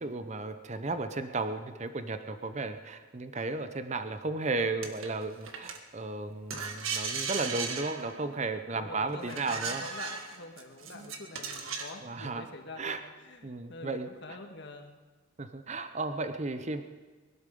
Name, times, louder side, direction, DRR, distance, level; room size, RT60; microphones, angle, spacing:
voice 1, 0.0-9.8 12.0-12.5 12.8-13.0 13.4-14.4 15.4-16.8, right 3 dB, 35° right, 9 dB, 0.7 m, -34 dB
sound 1, 4.8-5.8 6.5-8.3 9.3-12.0, right 5 dB, 90° right, 1.6 m, -36 dB
voice 2, 8.7-13.0 13.2-14.9, left 2 dB, 60° left, 4 dB, 1.7 m, -46 dB
21.5 x 12.0 x 5.4 m, 1.3 s
head